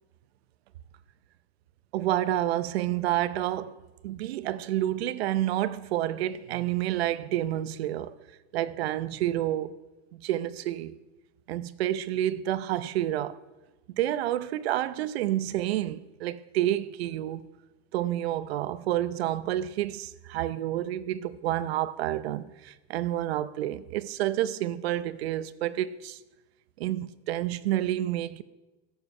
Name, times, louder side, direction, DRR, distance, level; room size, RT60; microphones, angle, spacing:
voice 1, 1.9-8.2 8.5-9.8 10.1-10.9 11.5-13.4 13.9-17.5 17.9-26.2 26.8-28.4, right 13 dB, 80° right, 0.7 m, -29 dB
14.5 x 8.0 x 5.4 m
supercardioid pair, 180°, 31 cm